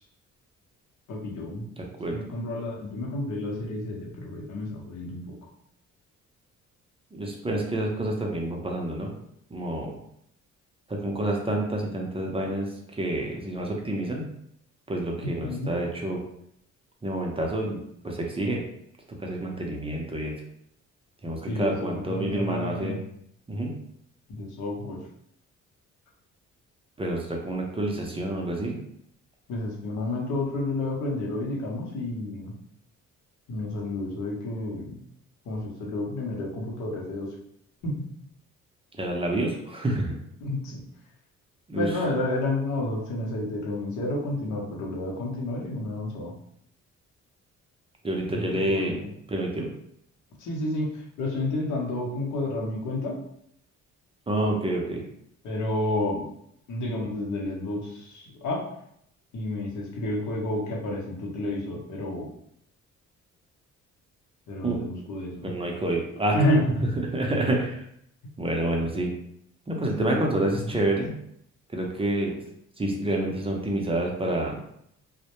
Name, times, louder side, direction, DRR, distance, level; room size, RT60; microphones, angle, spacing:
voice 1, 1.1-1.7 2.0-5.3 15.2-15.7 21.5-23.0 24.3-25.0 29.5-32.5 33.5-35.0 35.5-37.3 37.8-37.9 40.4-40.8 41.8-46.3 48.3-49.0 50.4-50.9 51.2-53.1 55.4-56.2 56.7-58.6 59.3-62.3 64.5-65.5 66.3-66.9 70.0-70.9, left 1 dB, 75° left, -2 dB, 0.8 m, -30 dB
voice 2, 1.8-2.2 7.1-9.1 9.5-9.9 10.9-12.7 13.0-14.3 14.9-16.2 17.0-18.6 19.2-20.4 21.2-23.0 23.5-23.7 27.0-28.8 39.0-40.1 41.7-42.0 48.0-49.7 54.3-55.0 64.6-64.8 65.4-66.4 67.1-67.8 68.4-69.1 69.7-71.1 71.7-72.3 72.8-74.5, right 1 dB, 20° right, 0 dB, 0.5 m, -28 dB
2.1 x 2.0 x 2.9 m, 0.71 s
cardioid pair, 90°, 30 cm